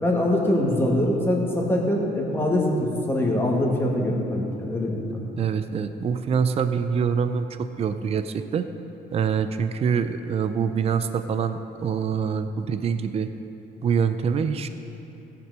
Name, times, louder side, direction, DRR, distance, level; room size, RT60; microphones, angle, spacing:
voice 1, 0.0-5.2, left 1 dB, 15° left, -2 dB, 2.2 m, -23 dB
voice 2, 5.4-8.7 9.1-13.3 13.8-14.7, right 6 dB, 35° right, 9 dB, 0.5 m, -25 dB
15.5 x 6.0 x 7.5 m, 3.0 s
cardioid pair, 110°, 17 cm